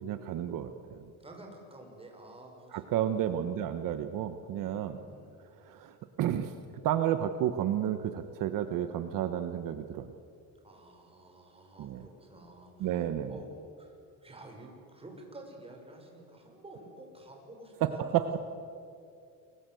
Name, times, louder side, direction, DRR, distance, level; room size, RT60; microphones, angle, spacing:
voice 1, 0.0-1.0 2.7-5.0 5.6-6.5 6.8-10.1 11.8-12.0 12.8-13.3 17.8-18.4, right 10 dB, 60° right, 9 dB, 1.3 m, -31 dB
voice 2, 1.2-3.4 4.5-5.3 10.6-13.5 13.8-18.2, right 2 dB, 15° right, 2 dB, 6.2 m, -50 dB
28.0 x 23.0 x 7.9 m, 2.5 s
cardioid pair, 130°, 36 cm